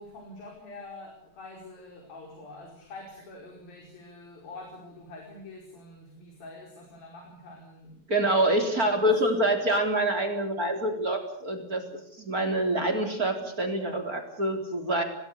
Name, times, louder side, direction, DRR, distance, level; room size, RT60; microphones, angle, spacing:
voice 1, 0.0-8.3 8.6-9.0, left 2 dB, 80° left, 1 dB, 6.7 m, -46 dB
voice 2, 8.1-15.0, right 1 dB, 25° right, 4 dB, 3.9 m, -26 dB
28.5 x 20.0 x 8.3 m, 0.70 s
omnidirectional pair, 4.1 m